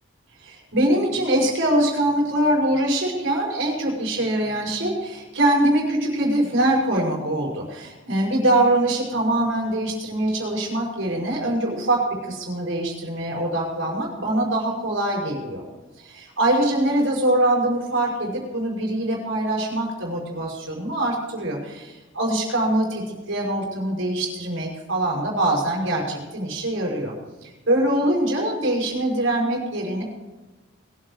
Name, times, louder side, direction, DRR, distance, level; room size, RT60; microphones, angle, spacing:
voice 1, 0.4-15.6 16.0-27.1 27.4-30.0, right 1 dB, 75° right, -2 dB, 5.7 m, -23 dB
22.0 x 8.4 x 4.9 m, 1.2 s
head